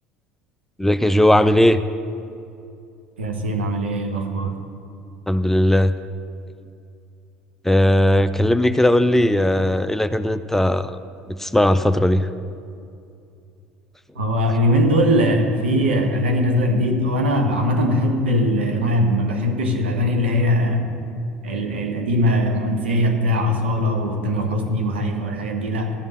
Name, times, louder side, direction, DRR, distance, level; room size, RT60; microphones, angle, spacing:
voice 1, 0.8-1.8 5.3-5.9 7.6-11.0 11.3-12.3, left 1 dB, 5° left, 11 dB, 0.4 m, -17 dB
voice 2, 3.2-4.5 14.1-20.9 21.4-25.9, equal, 80° right, 3 dB, 1.3 m, -20 dB
12.5 x 5.4 x 8.3 m, 2.5 s
hypercardioid pair, 65°, 6 cm